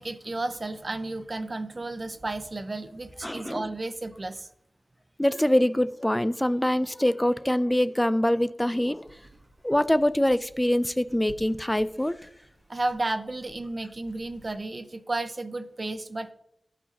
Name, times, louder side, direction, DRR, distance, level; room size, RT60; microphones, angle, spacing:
voice 1, 0.0-4.5 12.7-16.3, right 2 dB, 45° right, 10 dB, 0.6 m, -33 dB
voice 2, 3.2-3.6 5.2-9.2 9.6-12.3, left 1 dB, 10° left, 14 dB, 0.4 m, -24 dB
sound 1, 8.9-14.5, right 2 dB, 80° right, 1.2 m, -54 dB
15.0 x 5.0 x 2.9 m, 0.78 s
wide cardioid pair, 85°, 0 cm